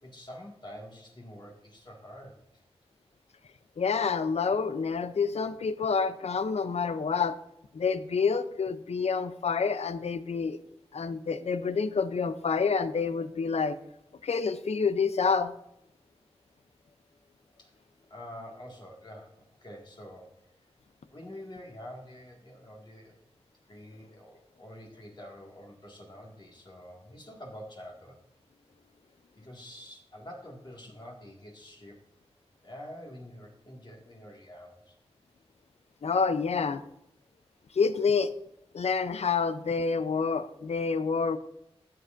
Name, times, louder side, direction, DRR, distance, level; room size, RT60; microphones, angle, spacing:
voice 1, 0.0-2.6 17.6-17.7 18.1-20.7 21.1-23.2 23.7-28.2 29.4-32.0 32.6-34.9, equal, 45° left, -1 dB, 1.9 m, -47 dB
voice 2, 3.8-7.4 7.7-10.6 10.9-13.8 14.2-15.5 36.0-36.8 37.7-38.3 38.7-41.4, left 5 dB, 85° left, 12 dB, 0.6 m, -28 dB
12.5 x 7.7 x 2.6 m, 0.80 s
wide cardioid pair, 80°, 11 cm